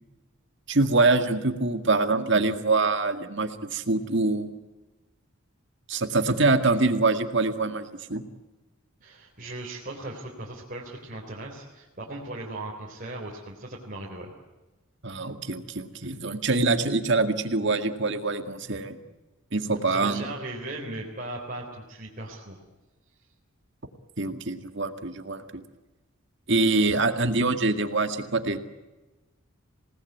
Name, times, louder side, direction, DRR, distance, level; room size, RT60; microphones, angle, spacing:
voice 1, 0.7-4.5 5.9-8.2 15.0-19.0 19.5-20.2 24.2-25.6 26.5-28.6, right 3 dB, 55° right, 8 dB, 2.0 m, -24 dB
voice 2, 9.0-14.3 19.9-22.6, right 2 dB, 40° right, -3 dB, 3.8 m, -38 dB
27.5 x 19.0 x 9.4 m, 1.1 s
head